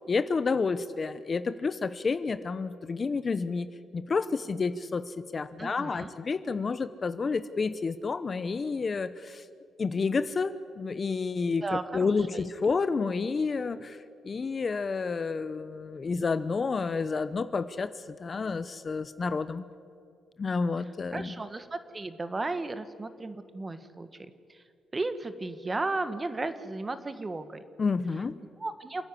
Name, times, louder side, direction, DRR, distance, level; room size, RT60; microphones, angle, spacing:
voice 1, 0.1-3.7 3.9-9.4 9.8-19.6 20.4-21.4 27.8-28.4, left 4 dB, 35° left, 13 dB, 0.8 m, -30 dB
voice 2, 5.6-6.1 11.6-12.4 21.1-24.6 24.9-27.6 28.6-29.0, right 2 dB, 25° right, 11 dB, 1.3 m, -35 dB
28.0 x 9.8 x 9.8 m, 2.4 s
cardioid pair, 90°, 0 cm